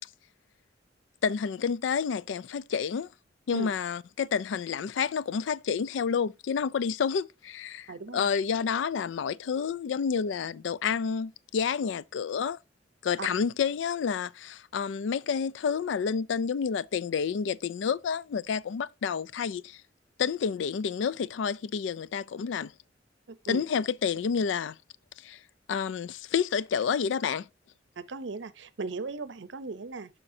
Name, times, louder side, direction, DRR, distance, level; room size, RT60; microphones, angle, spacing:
voice 1, 1.2-3.1 3.5-12.6 13.0-19.8 20.2-22.7 23.5-24.8 25.2-25.4 25.7-27.5, left 6 dB, 75° left, 0.3 m, -29 dB
voice 2, 7.9-8.3 13.2-13.3 23.3-23.6 28.0-30.1, right 4 dB, 70° right, 0.6 m, -37 dB
11.5 x 4.3 x 2.7 m
head